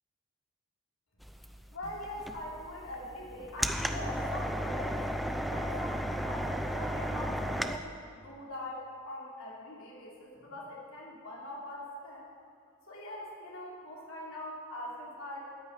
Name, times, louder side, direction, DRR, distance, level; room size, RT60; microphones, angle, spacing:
sound 1, 1.2-7.8, equal, ahead, 0.5 m, -34 dB
voice 1, 1.7-5.0 5.5-12.3 12.9-15.5, left 1 dB, 75° left, -4 dB, 3.0 m, -42 dB
13.5 x 6.1 x 9.4 m, 2.3 s
head